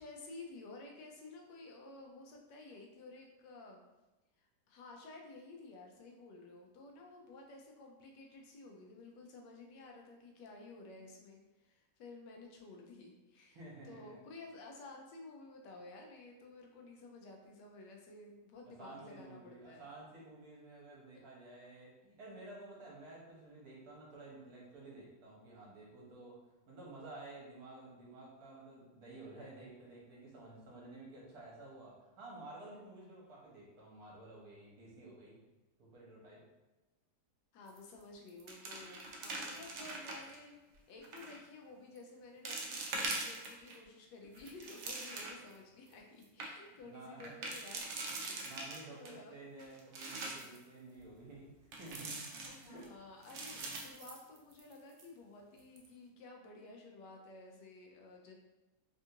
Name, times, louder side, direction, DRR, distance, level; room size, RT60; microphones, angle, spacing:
voice 1, 0.0-3.8 4.4-13.6 13.8-19.9 21.1-21.2 37.5-40.6 40.9-47.9 48.3-48.6 48.9-49.4 52.4-58.4, left 3 dB, 80° left, 1 dB, 1.2 m, -53 dB
voice 2, 13.5-14.2 18.8-26.4 26.7-35.4 35.8-36.4 46.6-47.4 48.1-52.2 52.6-52.9, right 2 dB, 65° right, -4 dB, 1.3 m, -52 dB
sound 1, 37.7-38.0 38.3-40.4 41.0-41.4 41.9-42.0 42.4-43.8 44.2-45.5 45.9-46.0 46.2-46.5 47.2-49.1 49.6-50.6 51.7-52.9 53.2-54.7 55.0-55.1 55.6-55.9, right 2 dB, 80° right, 0.6 m, -42 dB
3.5 x 2.4 x 2.8 m, 1.1 s
omnidirectional pair, 1.8 m